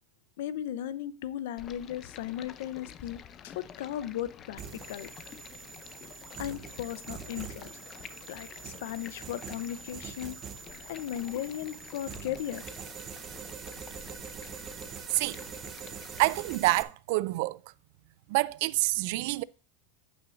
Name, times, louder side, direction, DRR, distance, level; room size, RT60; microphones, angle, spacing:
voice 1, 0.4-3.2 3.4-4.6 4.9-5.1 6.4-7.8 8.3-10.4 10.9-12.6, left 11 dB, 70° left, 0.7 m, -36 dB
Stream, 1.6-16.6, left 9 dB, 30° left, 0.5 m, -49 dB
sound 1, 4.6-16.8, right 7 dB, 30° right, 0.8 m, -44 dB
voice 2, 16.2-17.6 18.3-19.4, right 20 dB, 60° right, 0.3 m, -27 dB
15.5 x 5.8 x 2.5 m
supercardioid pair, 150°, 0 cm